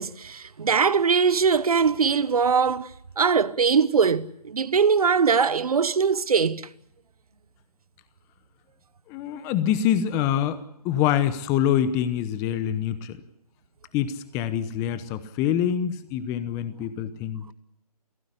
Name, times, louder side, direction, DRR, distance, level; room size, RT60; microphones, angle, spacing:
voice 1, 0.0-2.9 3.2-6.7, right 6 dB, 70° right, 1.2 m, -21 dB
voice 2, 9.1-10.6 10.8-13.2 13.9-17.5, left 10 dB, 15° left, 0.9 m, -25 dB
23.0 x 17.0 x 9.9 m
hypercardioid pair, 155°, 20 cm